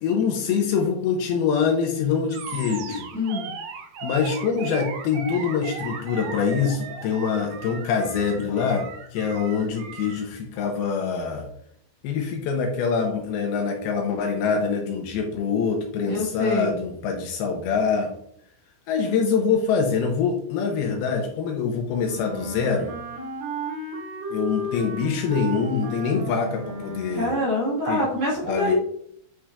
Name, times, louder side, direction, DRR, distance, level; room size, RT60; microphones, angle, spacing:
voice 1, 0.0-3.1 4.0-11.5 12.0-18.1 18.9-22.9 24.3-27.4 27.9-28.0 28.4-28.7, left 6 dB, 80° left, 2 dB, 2.7 m, -24 dB
Animal, 2.3-10.3, right 5 dB, 85° right, 1.6 m, -37 dB
voice 2, 3.1-3.5 16.1-16.7 27.1-28.7, left 1 dB, 45° right, -6 dB, 2.4 m, -25 dB
Wind instrument woodwind instrument, 22.0-27.6, equal, 65° right, 4.5 m, -34 dB
9.5 x 6.0 x 2.4 m, 0.69 s
omnidirectional pair, 4.6 m